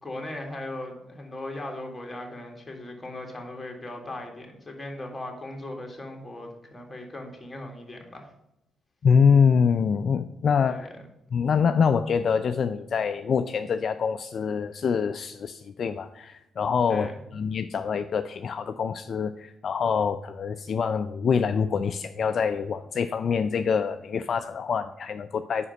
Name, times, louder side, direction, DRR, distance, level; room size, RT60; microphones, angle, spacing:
voice 1, 0.0-8.3 10.7-11.0 16.9-17.2, left 1 dB, 15° left, 1 dB, 1.9 m, -38 dB
voice 2, 9.0-10.9 11.3-17.1 17.3-25.7, left 6 dB, 50° left, 9 dB, 0.3 m, -25 dB
5.2 x 4.9 x 6.3 m, 0.86 s
cardioid pair, 90°, 0 cm